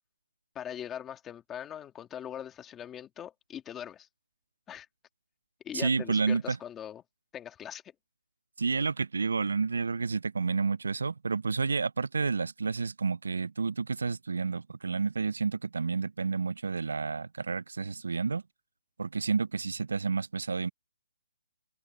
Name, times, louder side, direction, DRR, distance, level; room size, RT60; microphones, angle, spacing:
voice 1, 0.5-4.1 4.7-4.9 5.6-7.0 7.3-7.8, left 9 dB, 10° left, 2.1 m, -41 dB
voice 2, 5.7-6.6 8.6-18.4 19.0-20.7, right 4 dB, 80° right, 0.4 m, -30 dB
hypercardioid pair, 180°, 0 cm